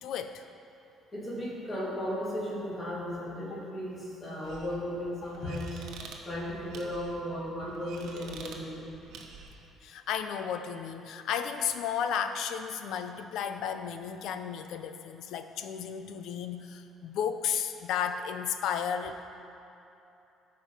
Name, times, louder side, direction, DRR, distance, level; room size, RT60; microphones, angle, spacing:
voice 1, 0.0-0.4 3.5-3.6 9.8-19.3, left 8 dB, 65° left, 8 dB, 0.6 m, -33 dB
voice 2, 1.1-5.8 6.2-8.9, equal, 20° left, -7 dB, 2.7 m, -35 dB
sound 1, 4.4-9.7, right 4 dB, 70° right, 1.0 m, -49 dB
13.5 x 5.2 x 5.7 m, 2.8 s
cardioid pair, 155°, 0 cm